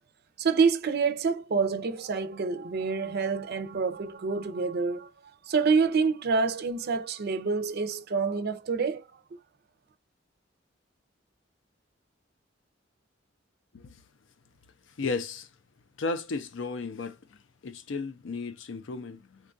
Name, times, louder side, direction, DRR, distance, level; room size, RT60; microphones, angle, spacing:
voice 1, 0.4-9.0 9.3-9.4, right 5 dB, 55° right, 0.5 m, -27 dB
voice 2, 15.0-15.5 16.0-17.2 17.6-19.4, left 3 dB, 75° left, 0.5 m, -34 dB
3.7 x 2.3 x 2.5 m
head